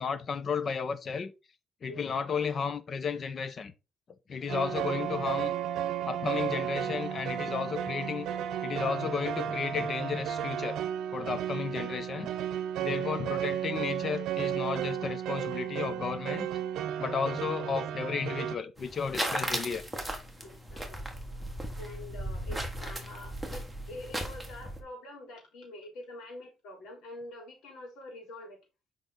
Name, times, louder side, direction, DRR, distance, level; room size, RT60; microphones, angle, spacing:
voice 1, 0.0-1.3 1.8-3.7 4.3-5.5 6.0-8.3 8.6-10.8 11.1-12.3 12.8-16.5 17.0-19.9, left 6 dB, 30° left, 0.6 m, -33 dB
sound 1, 4.5-18.6, right 10 dB, 75° right, 0.7 m, -33 dB
sound 2, 18.8-24.8, right 1 dB, ahead, 1.2 m, -36 dB
voice 2, 20.4-21.1 21.8-28.6, left 1 dB, 75° left, 3.9 m, -46 dB
6.7 x 5.2 x 3.8 m
cardioid pair, 175°, 0 cm